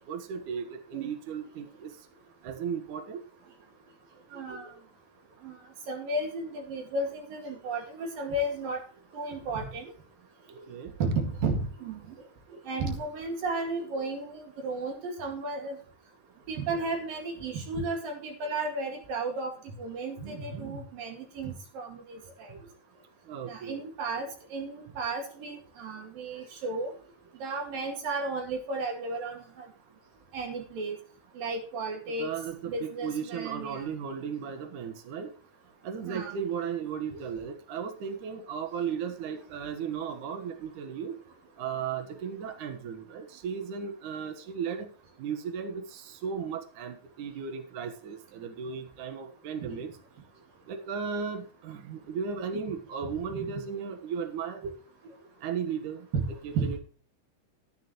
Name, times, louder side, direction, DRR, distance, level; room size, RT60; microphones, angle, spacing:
voice 1, 0.0-1.9 2.4-3.2 10.7-10.9 20.6-20.7 23.3-23.8 32.2-35.3 35.8-41.2 41.6-44.9 45.2-49.9 50.7-54.6 55.4-56.1 56.4-56.8, right 7 dB, 75° right, 6 dB, 1.8 m, -35 dB
voice 2, 4.3-4.7 5.4-5.5 5.9-8.8 9.1-9.9 11.0-12.0 12.7-15.8 16.5-22.5 23.5-26.9 27.4-29.7 30.3-31.0 31.4-32.3 32.7-33.9 36.1-36.4 37.1-37.2 49.6-49.7 52.5-52.6 53.3-53.5 54.6-54.7 56.1-56.2 56.5-56.7, right 3 dB, 55° right, 3 dB, 3.2 m, -33 dB
13.0 x 10.5 x 3.1 m, 0.40 s
omnidirectional pair, 5.8 m